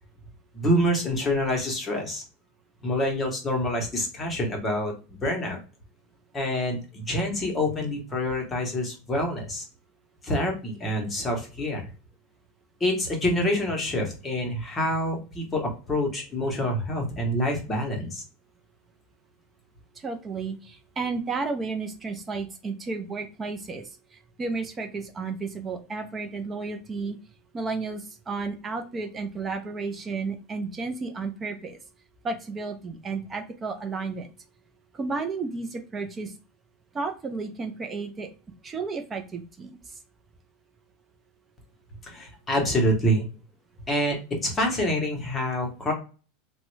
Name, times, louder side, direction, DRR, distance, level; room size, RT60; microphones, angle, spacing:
voice 1, 0.5-2.2 2.8-4.9 5.2-5.6 6.3-9.6 10.2-11.8 12.8-18.2 42.0-43.3 43.9-44.2 44.4-45.9, equal, 10° left, 1 dB, 0.7 m, -26 dB
voice 2, 20.0-23.8 24.4-27.2 27.5-31.8 32.2-34.3 34.9-36.3 36.9-38.3 38.6-39.8, right 4 dB, 15° right, 5 dB, 0.3 m, -32 dB
3.4 x 2.0 x 3.1 m, 0.35 s
supercardioid pair, 175°, 0 cm